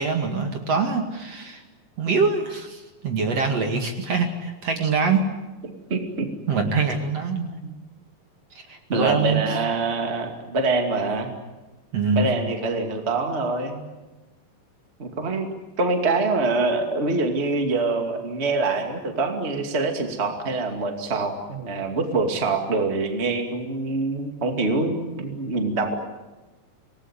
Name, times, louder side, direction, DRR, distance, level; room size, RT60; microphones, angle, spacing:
voice 1, 0.0-1.6 2.0-5.2 6.5-7.5 8.7-9.4 11.9-12.3, right 4 dB, 50° right, 4 dB, 3.0 m, -24 dB
voice 2, 5.6-6.3 7.6-7.7 8.9-11.3 12.2-13.8 15.0-15.5 15.8-25.9, right 3 dB, 20° right, 4 dB, 2.3 m, -25 dB
26.5 x 19.5 x 10.0 m, 1.1 s
omnidirectional pair, 3.9 m